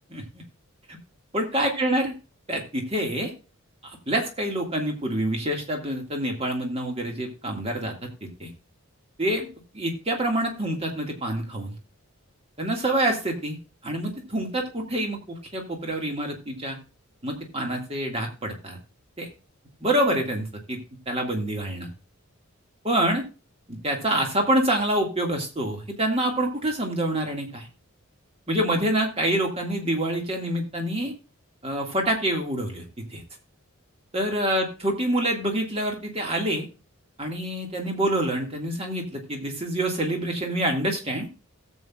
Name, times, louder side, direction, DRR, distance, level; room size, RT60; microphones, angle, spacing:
voice 1, 0.1-0.4 0.9-1.0 1.3-2.1 2.5-3.3 3.8-8.5 9.2-9.5 9.7-11.8 12.6-13.6 13.8-16.8 17.2-18.8 19.2-19.3 19.8-20.8 21.1-21.9 22.8-23.2 23.7-27.7 28.5-31.1 31.6-33.2 34.1-36.7 37.2-41.3, right 1 dB, 25° right, 2 dB, 2.0 m, -26 dB
17.5 x 7.6 x 2.4 m, 0.31 s
head